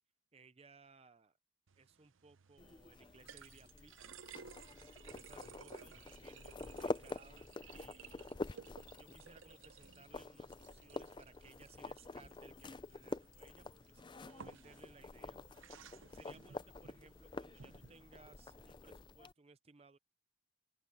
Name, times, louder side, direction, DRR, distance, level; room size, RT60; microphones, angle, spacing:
voice 1, 0.3-1.4 1.8-4.2 5.0-8.4 9.0-15.4 16.1-20.0, right 4 dB, 30° right, 0.5 m, -62 dB
sound 1, 1.7-18.7, right 6 dB, 80° right, 0.7 m, -58 dB
sound 2, 2.6-19.3, left 2 dB, 25° left, 0.4 m, -48 dB
open air
head